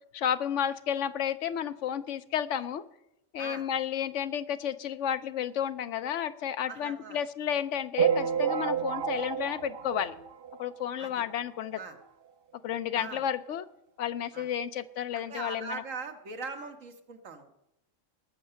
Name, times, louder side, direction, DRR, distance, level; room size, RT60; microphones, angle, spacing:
voice 1, 0.1-2.8 3.3-10.1 10.6-11.8 12.6-13.7 14.0-15.8, left 9 dB, 70° left, 13 dB, 0.9 m, -32 dB
voice 2, 6.7-7.2 11.0-11.1 11.7-12.0 12.9-13.2 14.3-14.5 15.1-17.6, right 4 dB, 80° right, 5 dB, 1.7 m, -41 dB
sound 1, 8.0-10.8 11.3-11.4 11.6-11.7 12.0-12.1 13.0-13.1 13.5-13.6, right 7 dB, 55° right, 0.8 m, -30 dB
18.5 x 6.5 x 6.9 m, 0.85 s
omnidirectional pair, 1.3 m